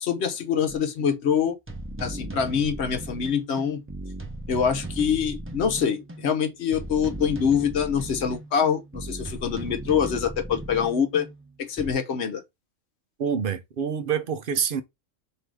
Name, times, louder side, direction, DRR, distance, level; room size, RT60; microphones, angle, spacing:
voice 1, 0.0-1.6 2.0-3.8 4.5-11.3 11.6-12.4, left 7 dB, 60° left, 1.0 m, -25 dB
sound 1, 0.7-0.8 1.7-11.9, right 1 dB, 15° right, 0.5 m, -37 dB
voice 2, 13.2-14.8, right 7 dB, 50° right, 0.7 m, -26 dB
3.8 x 2.8 x 4.6 m
omnidirectional pair, 1.3 m